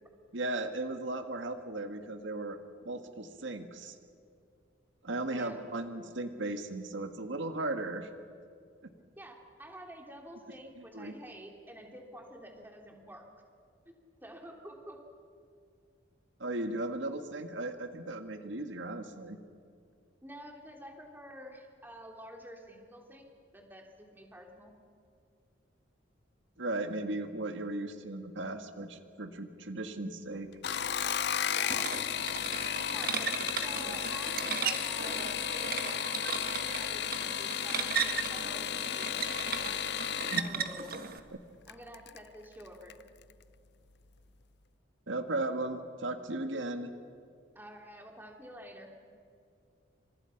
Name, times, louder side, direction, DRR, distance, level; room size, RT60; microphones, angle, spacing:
voice 1, 0.3-2.6 2.8-4.0 5.0-8.1 10.9-11.1 16.4-19.4 26.6-30.5 40.3-40.4 45.1-46.9, right 2 dB, 75° right, 7 dB, 1.7 m, -36 dB
voice 2, 5.2-5.6 9.2-13.2 13.8-14.0 14.2-15.0 20.2-23.2 23.5-24.7 31.5-32.0 32.9-39.8 40.3-40.9 41.7-42.9 47.5-48.9, equal, 10° right, 2 dB, 3.1 m, -49 dB
sound 1, 30.5-40.5 41.7-42.2 42.6-43.0 43.3-43.4, left 9 dB, 55° left, 0.6 m, -34 dB
sound 2, 31.7-41.2, right 6 dB, 50° right, 1.5 m, -37 dB
29.5 x 27.0 x 5.9 m, 2.3 s
head